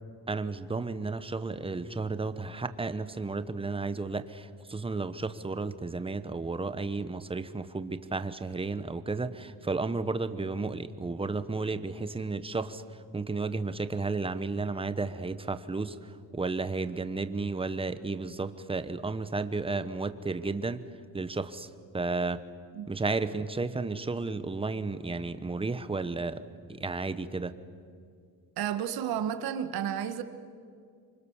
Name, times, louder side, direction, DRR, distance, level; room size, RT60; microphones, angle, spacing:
voice 1, 0.3-12.8 13.1-20.8 21.1-22.4 22.9-26.4 26.7-27.5, right 3 dB, 15° right, 1.1 m, -33 dB
voice 2, 28.6-30.2, right 9 dB, 90° right, 1.5 m, -31 dB
27.0 x 24.5 x 7.3 m
cardioid pair, 115°, 36 cm